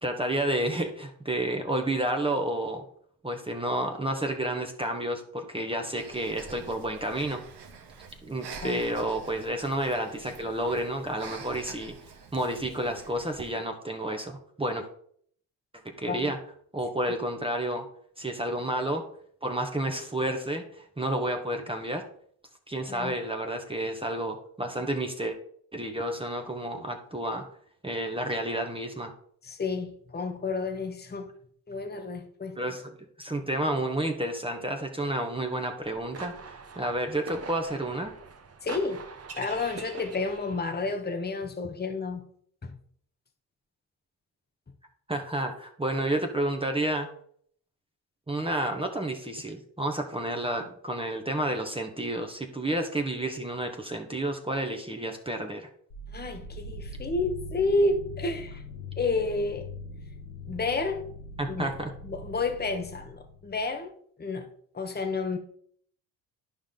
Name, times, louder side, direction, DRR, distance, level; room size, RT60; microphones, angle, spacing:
voice 1, 0.0-2.8 3.2-7.4 8.2-11.9 12.3-14.9 16.0-16.4 16.7-17.9 18.2-19.0 19.4-22.0 22.7-25.4 25.7-27.4 27.8-29.1 32.6-38.1 45.1-47.1 48.3-55.7 61.4-61.9, right 1 dB, 10° right, 1.3 m, -30 dB
Breathing, 6.0-13.6, right 5 dB, 55° right, 1.5 m, -47 dB
voice 2, 29.4-31.3 31.7-32.6 38.6-39.0 39.4-42.3 42.6-42.7 56.1-58.6 59.0-59.7 60.5-61.0 61.4-61.8 62.0-63.9 64.2-65.4, left 3 dB, 20° left, 1.2 m, -30 dB
sound 1, 35.7-40.8, right 5 dB, 30° right, 1.2 m, -43 dB
sound 2, 55.9-63.7, left 1 dB, 65° left, 1.9 m, -42 dB
11.5 x 5.0 x 3.8 m
hypercardioid pair, 50°, 48 cm